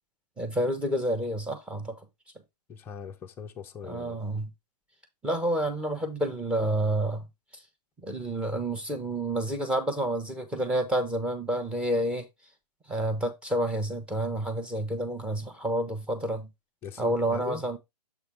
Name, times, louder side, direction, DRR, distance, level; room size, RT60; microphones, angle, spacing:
voice 1, 0.4-2.0 3.8-4.5 5.2-7.3 8.0-12.3 12.9-16.5 17.0-17.8, right 1 dB, 5° right, 0.9 m, -29 dB
voice 2, 2.7-4.2 16.8-17.6, left 7 dB, 10° left, 0.5 m, -40 dB
7.0 x 4.2 x 3.5 m
figure-of-eight pair, 125°, 21 cm